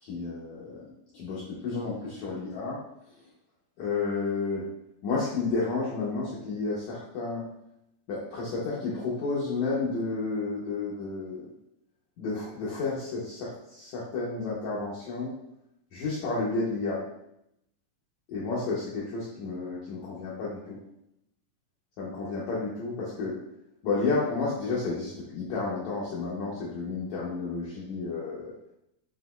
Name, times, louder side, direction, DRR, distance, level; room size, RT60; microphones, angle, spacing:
voice 1, 0.0-0.9 1.1-2.8 3.8-4.6 5.0-7.5 8.1-11.5 12.2-15.3 15.9-17.0 18.3-20.8 22.0-23.4 23.8-28.5, left 3 dB, 85° left, -7 dB, 1.6 m, -31 dB
7.4 x 2.9 x 2.3 m, 0.79 s
omnidirectional pair, 4.4 m